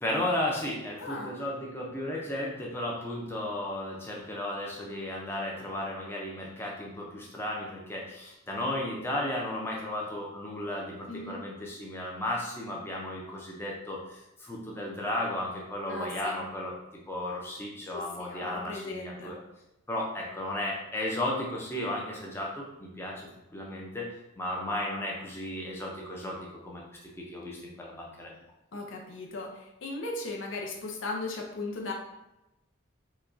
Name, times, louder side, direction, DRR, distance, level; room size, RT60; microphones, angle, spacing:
voice 1, 0.0-16.7 17.1-19.3 19.9-28.3, left 1 dB, 10° left, -3 dB, 0.6 m, -34 dB
voice 2, 1.0-1.3 11.1-11.4 15.9-16.4 17.9-19.4 28.7-31.9, left 2 dB, 70° left, 0 dB, 0.6 m, -37 dB
4.8 x 2.3 x 2.6 m, 0.93 s
head